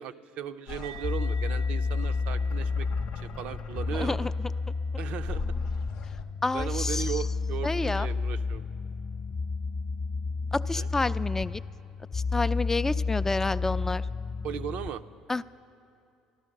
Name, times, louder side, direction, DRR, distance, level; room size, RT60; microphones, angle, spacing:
voice 1, 0.0-2.9 3.2-4.3 5.0-5.4 6.5-8.6 10.7-10.9 14.4-15.0, right 9 dB, 65° right, 10 dB, 0.5 m, -37 dB
sound 1, 0.7-4.7 5.2-6.2, left 5 dB, 75° left, 0.6 m, -40 dB
sound 2, 0.8-7.7, right 2 dB, 90° right, 0.8 m, -52 dB
sound 3, 1.0-14.9, left 4 dB, 40° left, 0.8 m, -31 dB
voice 2, 3.9-4.3 6.4-7.1 7.6-8.1 10.5-11.6 12.1-14.1 15.3-15.4, left 3 dB, 15° left, 15 dB, 0.3 m, -29 dB
13.5 x 12.0 x 6.4 m, 2.5 s
hypercardioid pair, 65°, 2 cm